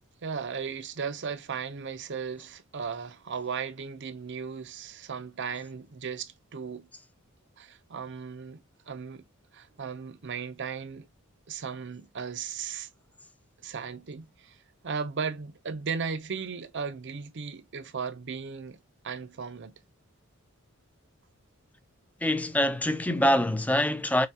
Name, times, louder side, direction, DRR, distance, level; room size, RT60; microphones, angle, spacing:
voice 1, 0.2-6.9 7.6-9.2 9.5-11.1 11.5-12.9 13.6-14.6 14.8-18.8 19.0-19.7, right 6 dB, 55° right, 0.6 m, -36 dB
voice 2, 22.2-24.3, left 1 dB, 5° left, 0.5 m, -25 dB
6.7 x 2.3 x 2.9 m
head